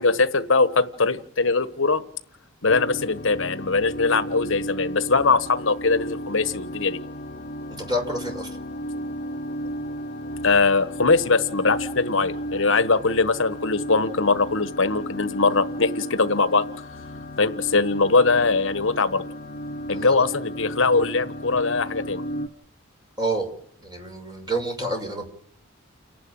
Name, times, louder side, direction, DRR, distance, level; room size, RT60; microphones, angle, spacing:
voice 1, 0.0-2.0 2.6-7.0 10.4-16.6 17.4-19.2 19.9-22.2, left 4 dB, 65° left, 11 dB, 1.2 m, -21 dB
sound 1, 2.7-22.5, equal, 45° left, 1.3 m, -34 dB
voice 2, 7.7-8.5 19.9-20.2 23.2-23.5 23.8-25.3, right 1 dB, 20° right, 2 dB, 6.1 m, -28 dB
29.5 x 11.0 x 8.9 m, 0.63 s
head